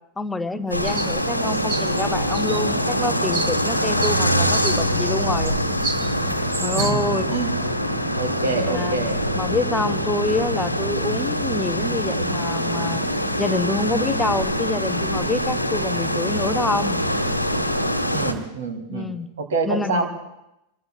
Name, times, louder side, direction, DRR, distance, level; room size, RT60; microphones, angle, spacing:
voice 1, 0.2-5.5 6.6-7.3 8.7-9.0 9.3-13.0 13.4-17.0 18.9-19.3 19.7-20.1, left 2 dB, 10° left, 11 dB, 0.7 m, -27 dB
sound 1, 0.7-18.3, equal, 90° left, 1.2 m, -24 dB
sound 2, 0.8-1.1 1.5-2.6 3.3-3.7 4.0-4.1 4.5-4.8 5.4-5.5 5.8-6.1 6.5-6.9, right 5 dB, 40° right, 1.7 m, -30 dB
voice 2, 6.7-7.6 8.1-9.2 18.1-19.1 19.4-20.1, right 4 dB, 60° right, 6 dB, 2.3 m, -26 dB
25.0 x 22.0 x 2.2 m, 0.87 s
figure-of-eight pair, 90°, 0 cm